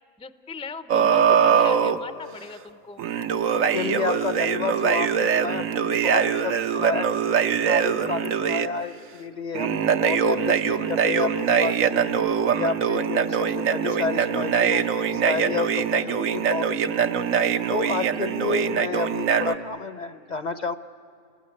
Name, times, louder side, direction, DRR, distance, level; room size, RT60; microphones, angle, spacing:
voice 1, 0.2-3.0, left 4 dB, 10° left, 12 dB, 0.4 m, -38 dB
sound 1, 0.9-2.0 3.0-8.7 9.5-19.5, right 7 dB, 80° right, 1.3 m, -23 dB
voice 2, 3.5-7.1 7.7-12.0 12.5-14.8 15.1-17.2 17.7-20.7, left 4 dB, 40° left, 12 dB, 0.7 m, -30 dB
29.0 x 20.5 x 9.7 m, 2.7 s
omnidirectional pair, 1.4 m